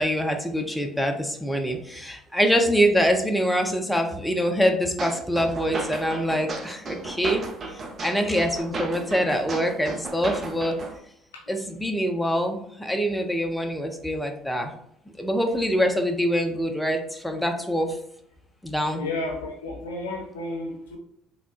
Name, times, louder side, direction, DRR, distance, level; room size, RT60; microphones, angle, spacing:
voice 1, 0.0-7.4 7.7-10.8 11.5-14.7 15.2-18.0 18.6-19.0, equal, 5° left, 3 dB, 0.5 m, -25 dB
sound 1, 5.0-11.0, right 3 dB, 45° right, 0.7 m, -34 dB
voice 2, 19.0-21.0, left 2 dB, 85° left, 0 dB, 0.6 m, -32 dB
3.5 x 2.2 x 2.4 m, 0.71 s
hypercardioid pair, 60°, 0 cm